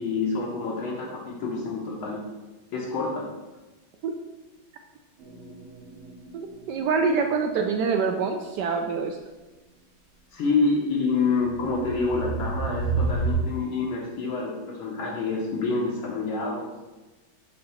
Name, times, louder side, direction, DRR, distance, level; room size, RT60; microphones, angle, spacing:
voice 1, 0.0-2.2 2.7-3.3 10.3-16.7, left 4 dB, 80° left, -3 dB, 2.0 m, -27 dB
sound 1, 5.2-7.1 8.3-8.4 11.4-13.3, right 4 dB, 50° right, 0.8 m, -30 dB
voice 2, 6.3-9.2, right 5 dB, 75° right, 4 dB, 1.0 m, -25 dB
7.7 x 2.8 x 5.6 m, 1.1 s
omnidirectional pair, 2.2 m